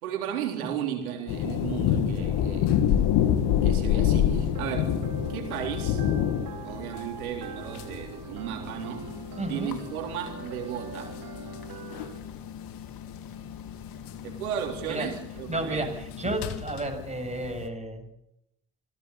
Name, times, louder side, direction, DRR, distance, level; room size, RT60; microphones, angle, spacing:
voice 1, 0.0-2.8 3.5-5.0 5.3-6.0 6.6-9.2 9.5-11.1 14.2-15.9, right 9 dB, 85° right, 3.8 m, -34 dB
sound 1, 1.3-17.7, left 10 dB, 70° left, 2.2 m, -28 dB
sound 2, 4.5-12.2, right 5 dB, 55° right, 5.0 m, -43 dB
sound 3, 8.7-16.6, left 8 dB, 55° left, 2.8 m, -43 dB
voice 2, 9.4-9.8 14.9-15.1 15.5-18.1, right 2 dB, 15° right, 7.5 m, -32 dB
27.0 x 17.0 x 8.5 m
hypercardioid pair, 45°, 42 cm